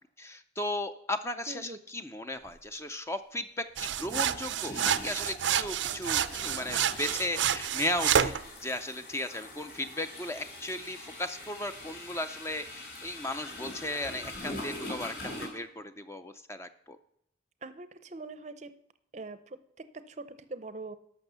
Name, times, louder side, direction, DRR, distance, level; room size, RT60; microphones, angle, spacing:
voice 1, 0.2-8.3 8.6-17.0, left 1 dB, 15° left, 9 dB, 0.5 m, -36 dB
voice 2, 1.5-1.8 17.6-18.8 19.1-21.0, right 3 dB, 40° right, 12 dB, 0.6 m, -43 dB
sound 1, 2.4-2.6 3.9-15.5, left 1 dB, 60° left, 4.2 m, -43 dB
sound 2, 3.8-8.4, right 9 dB, 85° right, 0.5 m, -29 dB
12.0 x 6.3 x 6.8 m, 0.74 s
head